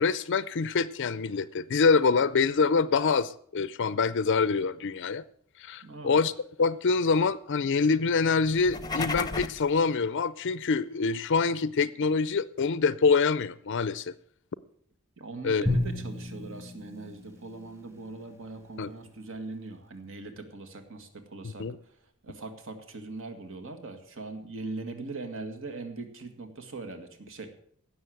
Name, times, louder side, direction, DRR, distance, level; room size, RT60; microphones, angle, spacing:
voice 1, 0.0-5.2 5.6-6.3 6.6-14.1 15.4-15.6 18.8-18.9 21.4-21.8, left 5 dB, 55° left, 0.5 m, -25 dB
voice 2, 5.8-6.2 15.2-27.5, right 3 dB, 60° right, 1.9 m, -41 dB
sound 1, 8.5-9.7, left 3 dB, 15° left, 0.8 m, -33 dB
Drum, 15.7-18.0, left 1 dB, 10° right, 1.6 m, -32 dB
16.5 x 6.6 x 7.8 m
head